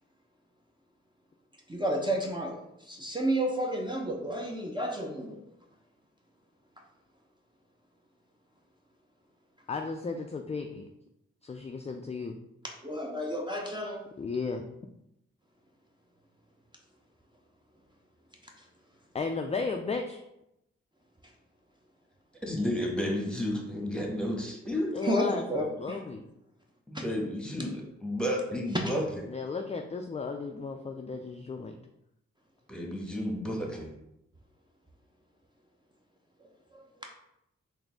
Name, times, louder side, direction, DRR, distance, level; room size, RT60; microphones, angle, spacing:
voice 1, 1.7-2.6 2.9-5.4 12.8-14.0 25.0-26.0 26.9-27.0 36.7-36.8, equal, 15° right, 0 dB, 0.7 m, -31 dB
voice 2, 9.7-10.9 11.4-12.3 14.2-14.6 19.1-20.2 24.9-26.2 29.3-31.7, left 4 dB, 25° left, 4 dB, 0.4 m, -34 dB
voice 3, 22.5-25.0 26.9-29.2 32.7-33.9, left 1 dB, 5° left, 0 dB, 1.2 m, -32 dB
3.8 x 2.7 x 3.5 m, 0.83 s
supercardioid pair, 40°, 29 cm